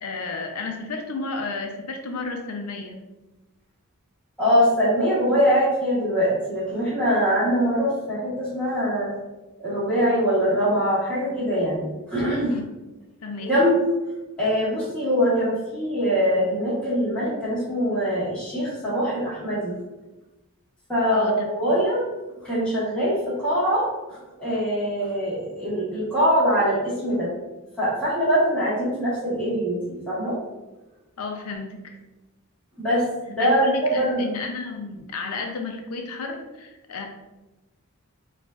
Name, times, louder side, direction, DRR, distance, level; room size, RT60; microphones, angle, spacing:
voice 1, 0.0-3.0 12.5-12.8 13.2-13.5 21.1-21.5 31.2-32.0 33.4-37.1, left 3 dB, 85° left, 3 dB, 0.5 m, -32 dB
voice 2, 4.4-9.1 9.6-12.6 13.4-13.8 14.4-19.8 20.9-22.0 22.4-27.3 27.8-30.4 32.8-34.2, equal, 5° left, -11 dB, 1.2 m, -23 dB
4.9 x 2.4 x 2.3 m, 1.1 s
head